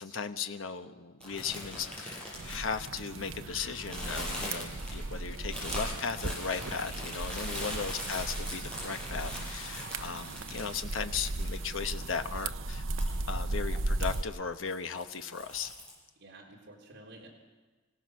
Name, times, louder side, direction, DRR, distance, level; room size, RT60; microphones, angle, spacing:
voice 1, 0.0-12.8 13.3-15.7, left 5 dB, 90° left, 8 dB, 1.1 m, -37 dB
sound 1, 1.2-3.4 3.9-11.8 12.2-12.3 12.8-13.2 13.7-14.2 14.6-15.9, left 1 dB, 5° left, 7.8 m, -41 dB
sound 2, 2.3-14.2, right 2 dB, 90° right, 0.9 m, -36 dB
voice 2, 7.3-7.8 16.2-17.3, right 2 dB, 60° right, -2 dB, 3.8 m, -51 dB
25.5 x 17.5 x 6.4 m, 1.3 s
head